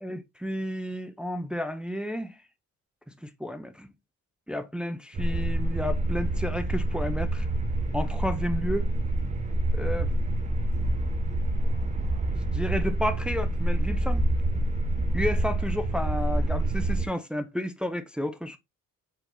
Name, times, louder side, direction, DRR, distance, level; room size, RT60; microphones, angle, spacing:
voice 1, 0.0-2.4 3.2-3.9 4.5-7.5 7.9-8.9 9.7-10.1 12.3-14.2 15.1-18.6, equal, 5° right, 0.4 m, -32 dB
sound 1, 5.1-17.1, right 1 dB, 25° right, 0.8 m, -27 dB
4.6 x 3.9 x 2.5 m
cardioid pair, 140°, 30 cm